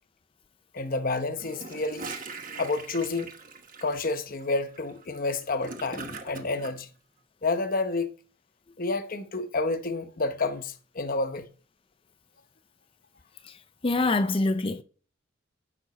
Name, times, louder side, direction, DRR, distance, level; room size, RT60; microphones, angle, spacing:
voice 1, 0.7-2.1 2.6-3.3 3.8-6.9 7.4-8.1 8.8-11.5, left 3 dB, 40° left, 0.9 m, -29 dB
Gurgling / Toilet flush, 1.4-6.7, right 3 dB, 40° right, 1.2 m, -41 dB
voice 2, 13.8-14.8, left 2 dB, 25° left, 0.5 m, -24 dB
10.5 x 6.0 x 4.2 m
head